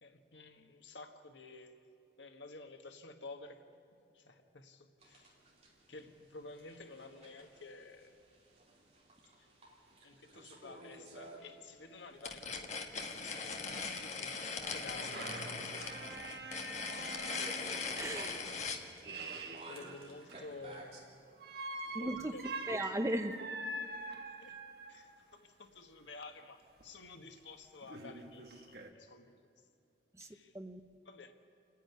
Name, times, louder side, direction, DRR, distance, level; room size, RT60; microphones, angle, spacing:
voice 1, 0.0-1.8 2.2-3.6 4.1-5.3 5.9-8.2 9.4-9.5 10.0-12.7 13.2-15.4 16.3-16.6 19.7-21.2 21.8-22.6 24.4-24.6 24.9-29.4 30.2-30.5 31.0-31.3, left 3 dB, 90° left, 6 dB, 1.5 m, -52 dB
sound 1, 5.0-21.0, right 1 dB, 35° right, 3.4 m, -55 dB
sound 2, 12.1-12.2 12.4-12.5 13.1-13.2 14.5-20.7 21.4-25.1 26.8-26.9 27.4-27.5 27.8-28.9, right 2 dB, 60° right, 1.4 m, -45 dB
sound 3, 12.2-18.8, left 4 dB, 40° left, 1.4 m, -40 dB
voice 2, 17.7-18.4 21.9-23.4 30.1-30.8, right 1 dB, 15° right, 8 dB, 0.8 m, -38 dB
28.5 x 10.5 x 9.7 m, 2.7 s
head